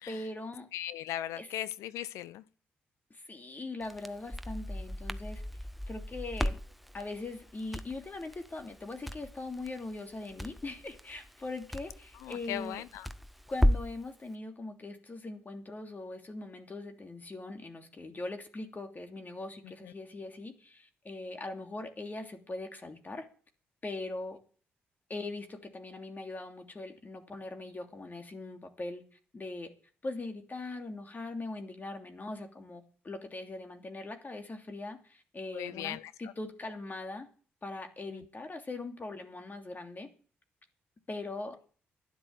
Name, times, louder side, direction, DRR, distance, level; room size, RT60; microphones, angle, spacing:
voice 1, 0.1-0.7 1.3-1.5 3.1-5.4 5.9-6.6 6.9-12.8 13.5-23.3 23.8-24.4 25.1-29.0 29.3-29.7 30.0-37.3 37.6-40.1 41.1-41.6, left 2 dB, 35° left, 3.0 m, -41 dB
voice 2, 0.7-2.4 12.1-13.1 19.6-19.9 35.5-36.1 38.1-38.2, left 12 dB, 85° left, 0.7 m, -38 dB
Crackle, 3.8-14.0, equal, ahead, 1.1 m, -35 dB
12.0 x 10.5 x 7.7 m
supercardioid pair, 50°, 5 cm